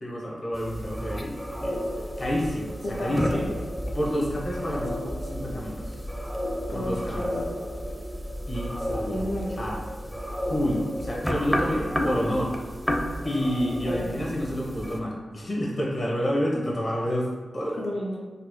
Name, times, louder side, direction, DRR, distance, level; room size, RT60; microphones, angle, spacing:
voice 1, 0.0-3.4 3.9-6.1 6.7-7.2 8.5-9.3 9.6-9.8 10.5-12.5 13.2-17.8, equal, 55° left, -4 dB, 1.0 m, -29 dB
sound 1, 0.5-15.0, equal, ahead, 0.5 m, -32 dB
voice 2, 2.8-3.6 6.7-7.5 9.1-9.6 12.1-12.2 13.8-14.1 17.8-18.2, left 1 dB, 75° left, -7 dB, 0.6 m, -32 dB
4.0 x 2.0 x 3.0 m, 1.3 s
cardioid pair, 45°, 0 cm